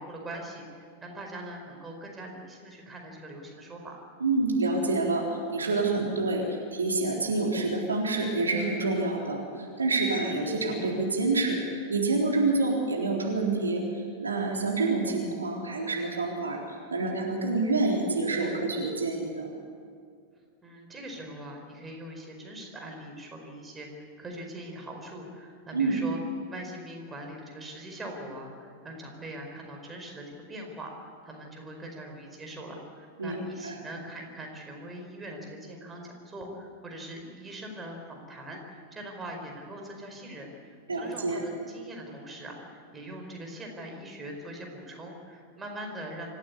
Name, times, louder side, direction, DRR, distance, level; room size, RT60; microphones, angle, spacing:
voice 1, 0.0-4.0 20.6-26.2 26.5-30.9 31.2-46.3, right 1 dB, 15° right, 2 dB, 4.9 m, -42 dB
voice 2, 4.2-5.3 5.5-11.6 11.9-19.5 25.7-26.0 33.2-33.8 40.9-41.4, right 3 dB, 75° right, -1 dB, 3.8 m, -27 dB
26.0 x 15.5 x 8.4 m, 2.2 s
figure-of-eight pair, 90°, 0 cm